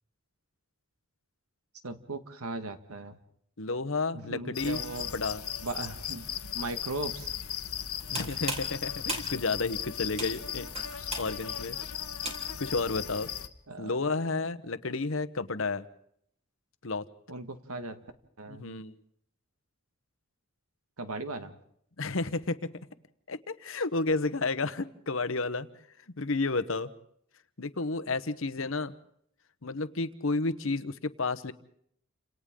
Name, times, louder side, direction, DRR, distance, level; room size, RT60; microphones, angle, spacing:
voice 1, 1.8-3.2 4.1-5.1 5.6-6.2 6.5-7.3 13.7-13.9 17.3-18.0 18.4-18.7 21.0-21.6, right 2 dB, 85° right, 8 dB, 1.8 m, -38 dB
voice 2, 3.6-4.8 5.1-5.4 8.1-10.7 11.2-11.8 12.6-13.3 13.8-15.8 16.8-17.0 18.5-19.0 22.0-22.7 23.3-25.7 26.2-26.9 27.6-28.9 29.6-31.5, left 3 dB, 65° left, 12 dB, 1.0 m, -31 dB
sound 1, 4.5-13.5, left 9 dB, 85° left, 1.2 m, -37 dB
sound 2, 7.9-12.7, right 2 dB, 30° right, 4.2 m, -39 dB
29.5 x 27.0 x 3.8 m, 0.69 s
head